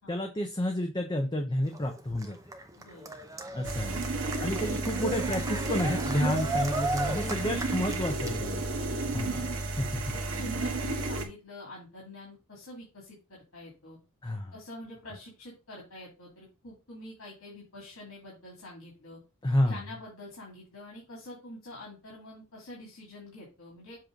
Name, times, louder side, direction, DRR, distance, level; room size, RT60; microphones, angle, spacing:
voice 1, 0.1-2.4 3.5-4.0 4.4-8.6 9.1-9.4 9.8-9.9 14.2-14.5 19.4-19.8, left 1 dB, 20° left, 4 dB, 0.7 m, -30 dB
Cheering, 1.6-8.6, right 2 dB, 15° right, 0.7 m, -36 dB
voice 2, 2.7-3.1 3.6-4.0 7.0-7.9 8.7-9.1 9.4-9.6 10.1-14.0 14.5-19.2 19.6-24.0, left 1 dB, 80° left, -3 dB, 2.7 m, -46 dB
sound 1, 3.6-11.3, right 2 dB, 80° right, 1.4 m, -32 dB
7.5 x 3.1 x 5.0 m, 0.29 s
head